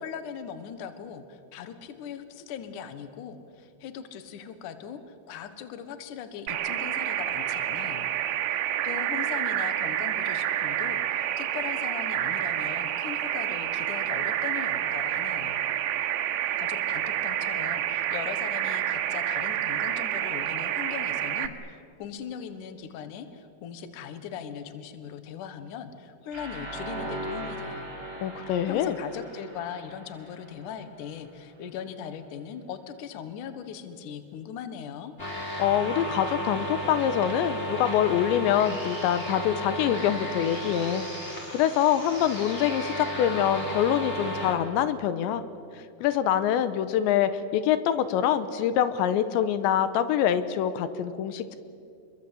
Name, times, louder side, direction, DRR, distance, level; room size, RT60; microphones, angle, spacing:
voice 1, 0.0-8.1 8.8-15.6 16.6-27.9 28.7-35.1, left 8 dB, 60° left, 10 dB, 2.4 m, -39 dB
sound 1, 6.5-21.5, right 11 dB, 80° right, 3.3 m, -29 dB
sound 2, 26.3-31.2, right 1 dB, 20° right, 6.0 m, -39 dB
voice 2, 28.2-28.9 35.6-45.4 46.0-51.6, left 10 dB, 85° left, 12 dB, 3.1 m, -25 dB
sound 3, 35.2-44.5, equal, 15° left, 3.4 m, -34 dB
28.5 x 22.0 x 8.4 m, 2.5 s
omnidirectional pair, 5.2 m